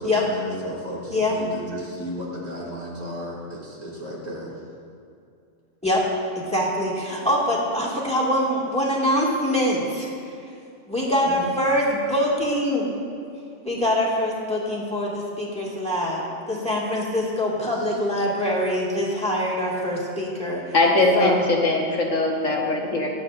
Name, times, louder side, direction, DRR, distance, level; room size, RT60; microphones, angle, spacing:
voice 1, 0.0-4.5 11.2-11.5 17.5-17.7, equal, 75° right, -5 dB, 3.0 m, -34 dB
voice 2, 1.1-1.4 5.8-6.0 6.4-10.3 10.9-13.0 13.7-20.7 21.1-21.4, left 1 dB, 5° left, -5 dB, 1.9 m, -24 dB
voice 3, 20.7-23.1, left 2 dB, 75° left, -1 dB, 1.6 m, -21 dB
22.5 x 8.0 x 2.5 m, 2.5 s
omnidirectional pair, 1.3 m